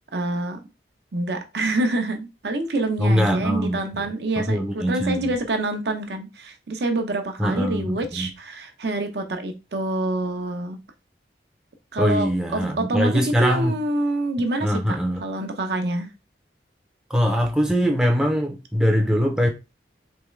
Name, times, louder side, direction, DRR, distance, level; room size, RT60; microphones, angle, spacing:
voice 1, 0.1-0.6 1.1-10.8 11.9-13.1 13.4-16.1, right 2 dB, 70° right, 0.6 m, -26 dB
voice 2, 3.0-5.4 7.4-8.3 12.0-13.8 14.6-15.2 17.1-19.5, equal, 5° right, 0.5 m, -22 dB
3.5 x 3.1 x 3.1 m
head